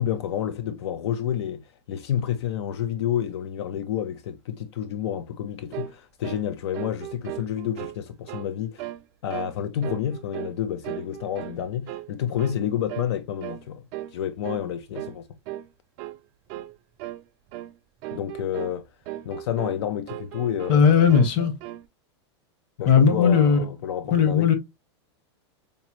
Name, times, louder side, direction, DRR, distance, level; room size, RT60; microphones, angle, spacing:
voice 1, 0.0-8.9 9.2-15.3 18.1-18.8 19.2-21.2 22.8-24.5, left 10 dB, 70° left, 0.5 m, -29 dB
sound 1, 5.7-6.0 6.2-6.5 6.7-8.0 8.3-8.5 8.8-9.0 9.3-9.5 9.8-10.6 10.8-11.6 11.9-12.1 12.4-12.6 12.9-13.1 13.4-13.6 13.9-14.2 14.4-14.7 14.9-15.2 15.5-15.7 16.0-16.2 16.5-16.7 17.0-17.2 17.5-17.7 18.0-18.8 19.1-19.8 20.1-20.8 21.1-21.8, right 14 dB, 35° right, 0.4 m, -37 dB
voice 2, 20.7-21.5 22.9-23.6 24.1-24.5, left 6 dB, 35° left, 0.9 m, -17 dB
5.0 x 2.0 x 2.9 m
supercardioid pair, 160°, 15 cm